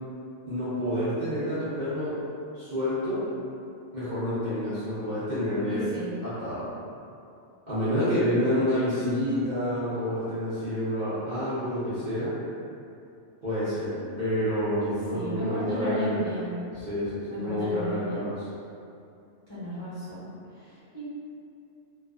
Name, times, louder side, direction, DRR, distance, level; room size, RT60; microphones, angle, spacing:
voice 1, 0.5-2.2 2.5-3.3 3.9-5.9 6.2-6.7 7.7-12.3 13.4-16.2 16.7-18.5, equal, 50° right, -13 dB, 0.7 m, -28 dB
voice 2, 5.7-6.1 14.8-16.6 17.3-18.2 19.5-21.0, left 1 dB, 25° left, -16 dB, 0.8 m, -34 dB
2.3 x 2.3 x 2.3 m, 2.5 s
omnidirectional pair, 1.2 m